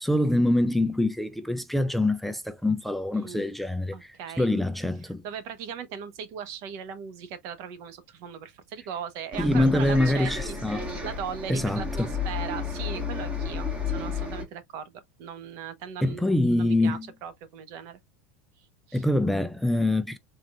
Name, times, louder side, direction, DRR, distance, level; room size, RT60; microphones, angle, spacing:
voice 1, 0.0-5.2 9.4-10.9 11.5-12.1 16.0-17.0 18.9-20.2, left 1 dB, ahead, 0.3 m, -25 dB
voice 2, 3.1-3.5 3.9-4.5 5.2-10.3 10.7-18.0 18.6-19.0, right 7 dB, 55° right, 1.0 m, -39 dB
Bus, 9.3-14.4, left 4 dB, 20° right, 1.8 m, -32 dB
3.9 x 3.7 x 2.4 m
supercardioid pair, 130°, 7 cm